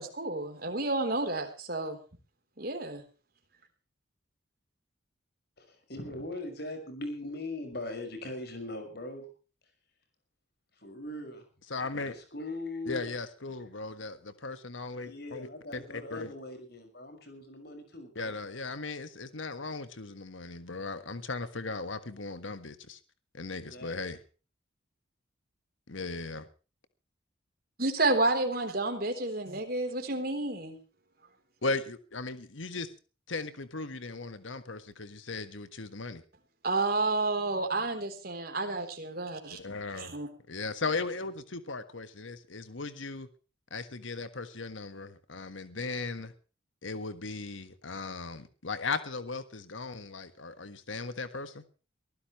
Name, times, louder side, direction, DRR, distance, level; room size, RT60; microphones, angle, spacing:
voice 1, 0.0-2.0 2.6-3.0 27.8-30.8 36.6-39.6 40.0-40.3, right 2 dB, 50° right, 6 dB, 3.7 m, -30 dB
voice 2, 5.7-9.3 10.8-11.4 11.9-13.1 15.0-18.3 23.5-24.0, left 2 dB, 55° left, 7 dB, 5.9 m, -40 dB
voice 3, 11.7-12.1 12.8-16.3 18.1-23.0 23.3-24.2 25.9-26.5 31.6-32.9 33.3-36.2 39.5-40.1 40.5-43.3 43.7-46.3 46.8-51.6, left 3 dB, 80° left, 11 dB, 1.5 m, -37 dB
23.0 x 15.5 x 3.2 m, 0.36 s
head